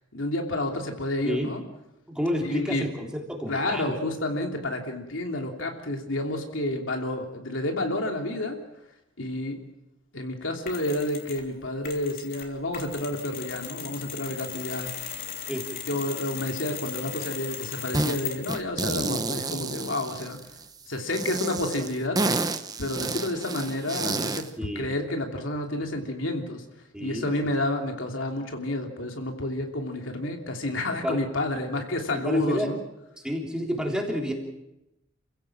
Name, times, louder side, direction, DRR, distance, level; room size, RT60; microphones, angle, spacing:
voice 1, 0.1-1.6 2.4-2.9 3.5-8.6 9.2-9.6 10.1-14.9 15.9-20.4 20.9-22.2 22.8-24.5 24.7-26.6 27.0-32.8, left 1 dB, 80° left, 3 dB, 3.0 m, -30 dB
voice 2, 2.1-4.0 15.5-15.7 24.6-24.9 26.9-27.5 31.0-31.2 32.2-32.7 33.2-34.3, equal, 5° right, 0 dB, 3.4 m, -30 dB
Mechanisms, 10.7-11.5 11.8-18.7, left 8 dB, 50° left, 3.3 m, -38 dB
sound 1, 17.9-18.2 18.5-20.6 21.1-24.5, right 3 dB, 20° right, 1.0 m, -30 dB
28.5 x 16.0 x 7.4 m, 0.91 s
head